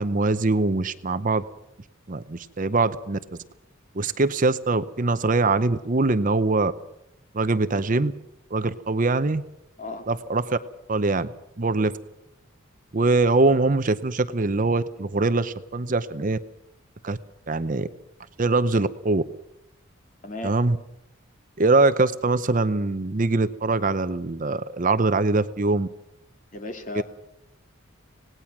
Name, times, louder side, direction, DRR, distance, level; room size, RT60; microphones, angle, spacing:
voice 1, 0.0-1.4 2.1-3.2 3.9-6.7 7.3-8.1 8.5-9.4 10.1-10.6 10.9-11.3 11.6-11.9 12.9-16.4 17.0-17.2 17.5-17.9 18.4-19.2 20.4-20.8 21.6-25.9 26.9-27.0, right 3 dB, 40° right, 12 dB, 0.7 m, -22 dB
voice 2, 20.2-20.6 26.5-27.0, left 2 dB, 40° left, 5 dB, 2.3 m, -34 dB
26.0 x 18.5 x 6.0 m, 0.84 s
head